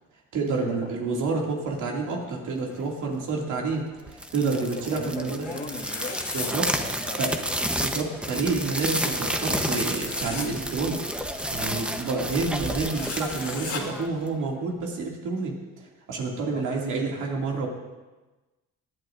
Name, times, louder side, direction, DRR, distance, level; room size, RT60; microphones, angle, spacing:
voice 1, 0.3-5.4 6.3-6.7 7.2-7.3 7.8-11.0 11.5-15.5 16.1-17.7, right 4 dB, 80° right, -1 dB, 2.5 m, -28 dB
sound 1, 4.1-14.4, equal, 5° right, 0.9 m, -30 dB
voice 2, 4.7-6.2 6.8-7.7 16.5-16.6, left 2 dB, 30° left, 2 dB, 1.7 m, -39 dB
sound 2, 5.4-6.5 8.6-10.5 12.9-13.8, left 5 dB, 50° left, 1.8 m, -38 dB
19.0 x 11.0 x 2.6 m, 1.2 s
cardioid pair, 90°, 30 cm